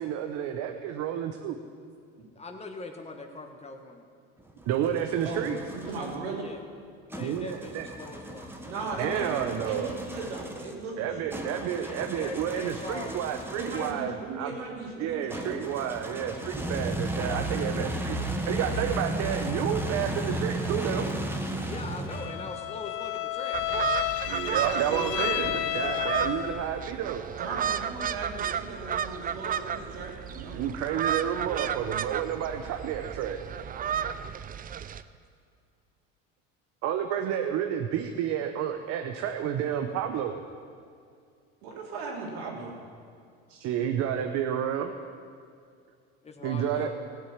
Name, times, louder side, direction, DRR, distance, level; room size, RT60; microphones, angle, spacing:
voice 1, 0.0-1.6 4.7-5.6 7.2-7.9 9.0-9.9 11.0-14.6 15.0-18.2 18.5-21.1 24.3-27.2 30.5-33.4 36.8-40.3 43.5-44.9 46.4-46.9, right 9 dB, 60° right, 5 dB, 1.0 m, -30 dB
voice 2, 2.3-4.0 6.4-6.6 7.1-8.5 11.8-13.2 21.7-23.8 46.2-46.9, left 3 dB, 20° left, 4 dB, 1.5 m, -41 dB
sound 1, 4.4-6.2 7.1-14.1 15.3-22.6, right 1 dB, 5° right, 1.5 m, -34 dB
voice 3, 5.2-6.5 8.6-11.4 13.5-15.6 24.4-25.5 27.4-30.6 41.6-42.7, right 3 dB, 85° right, -2 dB, 3.5 m, -37 dB
Bowed string instrument, 22.1-26.8, left 15 dB, 75° left, 0.8 m, -32 dB
sound 2, 23.5-35.0, right 8 dB, 30° right, 0.5 m, -33 dB
17.0 x 8.0 x 7.2 m, 2.3 s
supercardioid pair, 100°, 30 cm